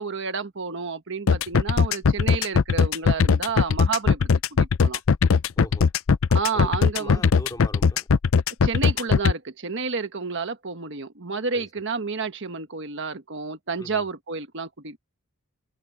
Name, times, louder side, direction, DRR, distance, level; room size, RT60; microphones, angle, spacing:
voice 1, 0.0-4.3 4.6-5.0 6.3-7.2 8.6-15.0, right 5 dB, 55° right, 1.4 m, -30 dB
sound 1, 1.3-9.3, left 5 dB, 65° left, 0.5 m, -19 dB
voice 2, 5.6-5.9 6.5-6.7 7.0-8.1 11.5-11.7 13.8-14.0, left 1 dB, 15° left, 3.2 m, -40 dB
head